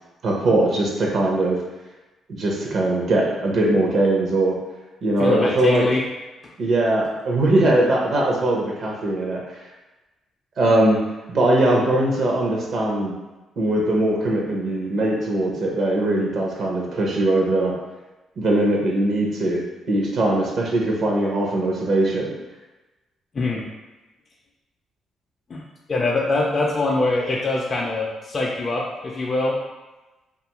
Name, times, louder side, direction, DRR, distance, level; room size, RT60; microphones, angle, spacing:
voice 1, 0.2-1.6 2.3-4.6 5.0-5.9 6.6-9.6 10.6-11.0 11.3-13.1 13.6-17.7 18.4-19.6 19.9-22.3, right 1 dB, 60° right, -1 dB, 0.6 m, -21 dB
voice 2, 5.2-6.0 23.3-23.7 25.5-25.6 25.9-29.6, left 2 dB, 35° left, -2 dB, 0.3 m, -23 dB
2.6 x 2.3 x 2.9 m, 1.1 s
cardioid pair, 90°, 0 cm